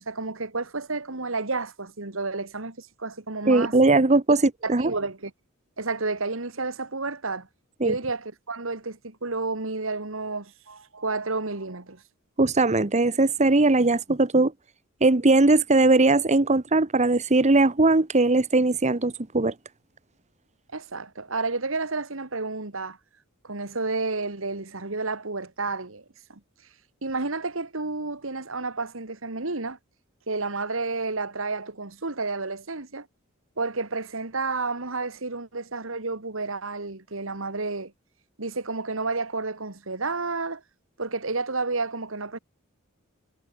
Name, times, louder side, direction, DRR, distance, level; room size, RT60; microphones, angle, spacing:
voice 1, 0.0-3.8 4.6-5.3 5.8-7.5 7.8-12.0 20.7-23.0 23.4-26.0 26.3-26.4 27.0-29.8 30.3-33.1 33.6-37.9 38.4-40.6 41.0-42.4, right 3 dB, 70° right, 2.3 m, -31 dB
voice 2, 3.5-4.4 4.7-4.9 7.8-7.9 12.4-14.5 15.0-19.5, right 2 dB, 35° right, 1.1 m, -20 dB
head